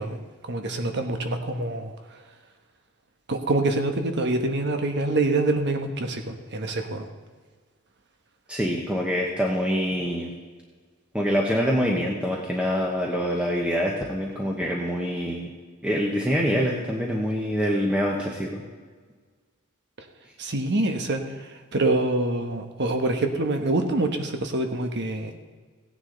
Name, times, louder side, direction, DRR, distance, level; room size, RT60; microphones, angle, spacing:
voice 1, 0.0-2.2 3.3-7.1 20.0-20.1 20.4-25.3, right 2 dB, 55° right, 6 dB, 1.2 m, -26 dB
voice 2, 8.5-10.3 11.1-15.5 15.8-18.6, equal, 5° right, -2 dB, 1.1 m, -25 dB
16.5 x 9.7 x 3.9 m, 1.5 s
head